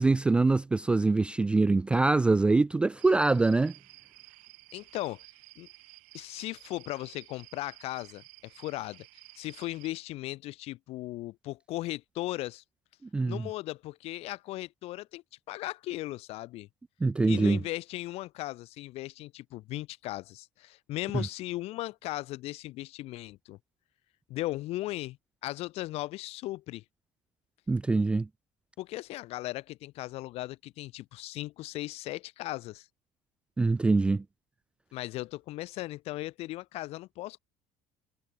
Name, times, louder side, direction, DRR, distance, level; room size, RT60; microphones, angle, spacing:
voice 1, 0.0-3.7 13.1-13.4 17.0-17.6 27.7-28.3 33.6-34.2, right 3 dB, 10° right, 0.3 m, -24 dB
sound 1, 3.0-9.9, right 26 dB, 75° right, 3.3 m, -54 dB
voice 2, 4.7-5.3 5.6-5.7 6.1-9.1 9.4-12.6 13.3-16.7 17.2-23.6 24.3-25.2 25.4-26.8 28.8-32.9 34.9-37.4, left 17 dB, 50° left, 1.2 m, -37 dB
cardioid pair, 180°, 13 cm